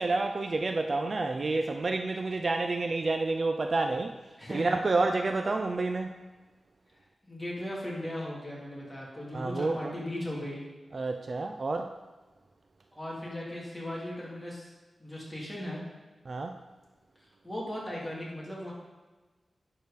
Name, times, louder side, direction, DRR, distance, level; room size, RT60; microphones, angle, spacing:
voice 1, 0.0-4.2 4.5-6.2 9.3-9.9 10.9-11.9 16.3-16.6, right 3 dB, 45° right, 5 dB, 0.5 m, -29 dB
voice 2, 4.4-4.7 7.3-10.6 12.9-14.7 15.0-15.8 17.4-18.7, left 1 dB, 10° left, -5 dB, 3.0 m, -37 dB
11.0 x 4.9 x 5.2 m, 1.3 s
wide cardioid pair, 100°, 0 cm